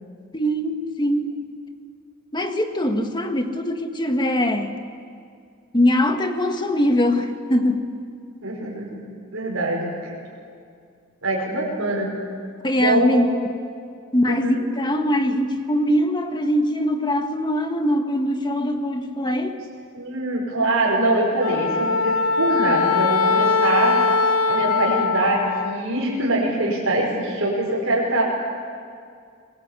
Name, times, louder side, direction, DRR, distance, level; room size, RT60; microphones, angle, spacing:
voice 1, 0.3-1.4 2.3-4.7 5.7-7.9 12.6-13.4 14.1-19.6, left 1 dB, 20° left, 6 dB, 1.5 m, -22 dB
voice 2, 8.4-9.0 9.3-10.2 11.2-12.1 12.8-13.2 14.3-14.6 19.9-24.0 24.5-28.2, right 2 dB, 70° right, -4 dB, 5.5 m, -23 dB
Wind instrument woodwind instrument, 21.4-25.8, left 4 dB, 85° left, 0.9 m, -21 dB
26.0 x 20.0 x 8.3 m, 2.3 s
head